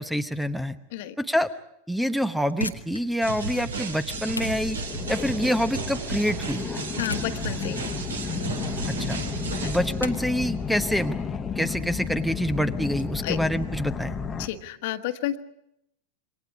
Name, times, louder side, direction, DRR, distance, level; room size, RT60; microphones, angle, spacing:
voice 1, 0.0-0.8 1.2-1.5 1.9-4.8 5.1-6.7 9.0-9.2 9.6-11.2 11.6-14.2, equal, ahead, 12 dB, 1.0 m, -26 dB
sound 1, 2.4-13.0, left 2 dB, 85° left, 1.2 m, -40 dB
sound 2, 3.2-10.1, right 3 dB, 70° right, 2.6 m, -33 dB
sound 3, 4.1-14.5, left 5 dB, 20° left, 1.4 m, -32 dB
voice 2, 7.0-7.9 9.5-9.7 13.2-13.4 14.4-15.4, left 14 dB, 50° left, 8 dB, 1.5 m, -31 dB
28.0 x 24.0 x 4.9 m, 0.77 s
figure-of-eight pair, 90°, 0 cm